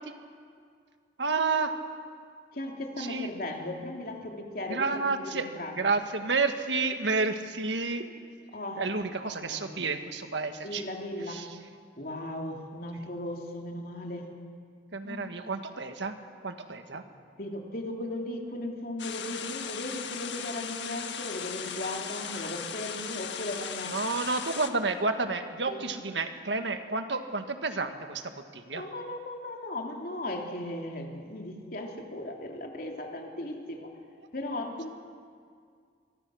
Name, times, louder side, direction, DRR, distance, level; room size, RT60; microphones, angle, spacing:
voice 1, 1.2-1.7 3.0-3.3 4.7-5.4 5.8-8.0 8.8-10.9 11.3-11.4 14.9-16.1 16.4-17.0 23.9-28.8, right 4 dB, 85° right, 7 dB, 1.6 m, -30 dB
voice 2, 2.5-5.9 8.5-8.8 9.2-9.8 10.6-11.4 12.0-14.3 15.0-15.2 16.9-17.0 17.4-24.0 25.7-25.8 28.7-33.9 34.3-34.9, left 1 dB, 55° left, 1 dB, 3.0 m, -37 dB
sound 1, 19.0-24.7, left 7 dB, 85° left, 1.5 m, -37 dB
25.0 x 23.5 x 6.4 m, 2.2 s
head